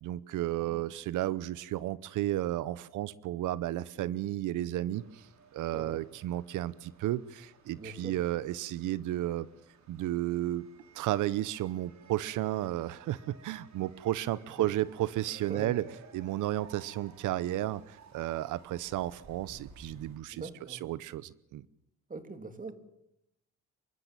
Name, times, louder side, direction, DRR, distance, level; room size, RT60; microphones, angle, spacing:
voice 1, 0.0-5.2 5.5-9.5 9.9-10.7 10.9-15.9 16.1-21.7, right 14 dB, 85° right, 19 dB, 0.8 m, -33 dB
sound 1, 4.9-20.2, right 5 dB, 65° right, 4.3 m, -57 dB
voice 2, 7.8-8.2 14.6-14.7 15.5-15.7 20.3-20.8 22.1-22.7, right 3 dB, 25° right, 8 dB, 3.0 m, -42 dB
24.5 x 14.0 x 9.0 m, 0.83 s
cardioid pair, 90°, 30 cm